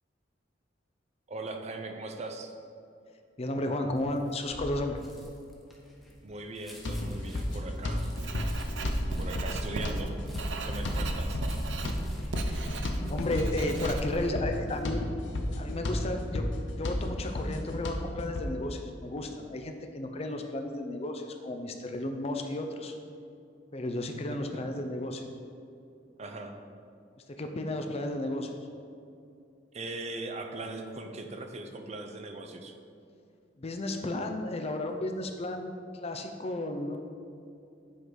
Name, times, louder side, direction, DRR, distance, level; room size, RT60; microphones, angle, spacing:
voice 1, 1.3-2.5 6.2-8.1 9.1-10.2 10.5-11.4 24.3-24.6 26.2-26.6 29.7-32.7, right 2 dB, 40° right, 5 dB, 0.6 m, -40 dB
voice 2, 3.4-5.0 12.4-15.0 15.5-16.4 16.8-22.9 23.7-25.2 27.3-28.5 33.6-35.7 36.0-37.0, left 1 dB, 35° left, 5 dB, 0.6 m, -33 dB
sound 1, 4.0-14.1 14.5-14.8, equal, ahead, 1.0 m, -44 dB
sound 2, 6.8-18.5, left 1 dB, 90° left, 0.7 m, -33 dB
Writing, 8.2-14.3, right 2 dB, 85° right, 0.6 m, -36 dB
7.9 x 3.8 x 4.8 m, 2.5 s
head